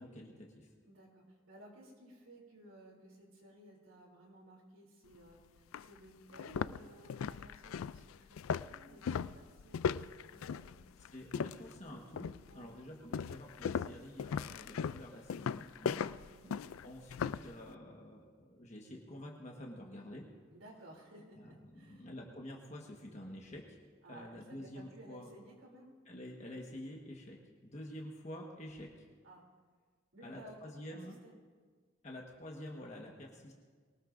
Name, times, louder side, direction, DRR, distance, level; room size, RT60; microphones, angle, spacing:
voice 1, 0.0-0.7 11.1-12.3 12.5-16.0 16.8-20.3 21.4-23.8 24.1-25.3 26.0-29.1 30.2-31.2 32.0-33.5, left 1 dB, 35° left, -1 dB, 1.4 m, -48 dB
voice 2, 0.8-9.9 10.3-10.8 12.4-12.8 16.3-16.6 20.5-22.1 24.0-25.9 29.2-29.4 30.1-30.6 30.9-31.0 31.2-31.3, right 1 dB, 85° right, -1 dB, 3.1 m, -57 dB
sound 1, 5.1-5.2 5.7-5.9 6.3-11.8 12.2-12.6 13.1-17.5, left 7 dB, 90° left, 0.3 m, -38 dB
23.0 x 19.0 x 2.6 m, 1.5 s
head